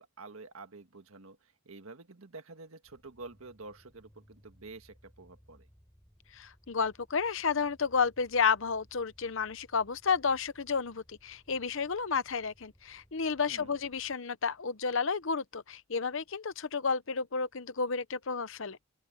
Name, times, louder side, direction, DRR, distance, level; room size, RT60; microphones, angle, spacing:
voice 1, 0.0-5.7 13.5-13.7, right 3 dB, 70° right, 1.6 m, -49 dB
sound 1, 2.8-14.2, equal, 10° left, 7.3 m, -63 dB
voice 2, 6.3-18.8, left 5 dB, 60° left, 0.8 m, -31 dB
open air
head